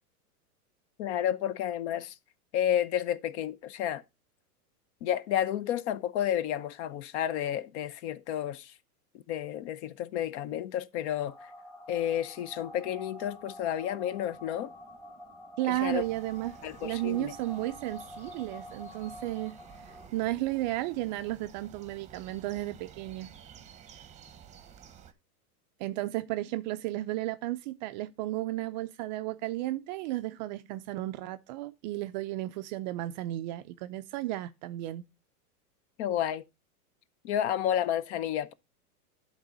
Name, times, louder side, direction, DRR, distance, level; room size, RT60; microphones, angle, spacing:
voice 1, 1.0-2.1 2.5-4.0 5.0-8.7 9.3-11.5 11.9-14.7 15.7-16.0 16.6-17.3 36.0-36.4 37.2-38.5, left 10 dB, 45° left, 0.7 m, -31 dB
sound 1, 11.2-20.1, left 1 dB, 5° left, 1.2 m, -48 dB
voice 2, 15.6-16.6 16.8-19.6 19.8-23.3 25.8-35.0, right 16 dB, 30° right, 0.4 m, -33 dB
sound 2, 15.7-25.1, right 8 dB, 15° right, 0.9 m, -52 dB
11.0 x 4.0 x 5.2 m
hypercardioid pair, 130°, 46 cm